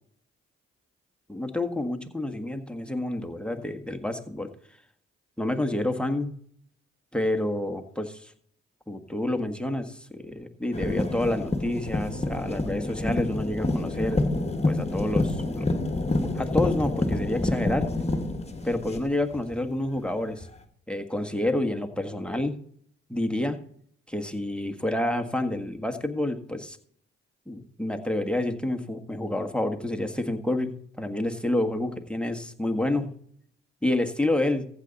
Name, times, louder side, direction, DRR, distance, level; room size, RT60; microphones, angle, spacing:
voice 1, 1.3-4.5 5.4-6.3 7.1-8.3 8.9-14.3 14.7-15.8 16.1-17.9 18.6-20.5 20.9-22.6 23.1-23.6 24.1-26.8 27.5-33.2 33.8-34.7, left 1 dB, 5° left, 7 dB, 1.5 m, -29 dB
sound 1, 10.7-19.5 20.4-20.5, left 2 dB, 20° left, 1.6 m, -28 dB
14.5 x 7.1 x 4.0 m, 0.62 s
supercardioid pair, 50°, 29 cm